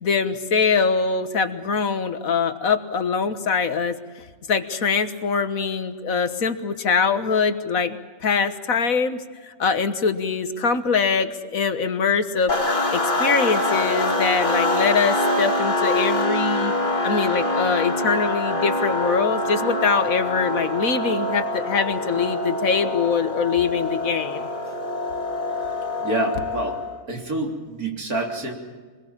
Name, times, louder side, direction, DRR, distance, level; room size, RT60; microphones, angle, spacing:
voice 1, 0.0-4.0 4.5-12.5 12.9-16.7 17.0-24.5, left 5 dB, 70° left, 9 dB, 1.7 m, -23 dB
sound 1, 12.5-27.0, left 1 dB, 35° left, 2.5 m, -25 dB
voice 2, 26.0-26.8 27.1-28.5, right 2 dB, 75° right, 1 dB, 4.1 m, -27 dB
25.5 x 21.0 x 7.4 m, 1.4 s
omnidirectional pair, 1.6 m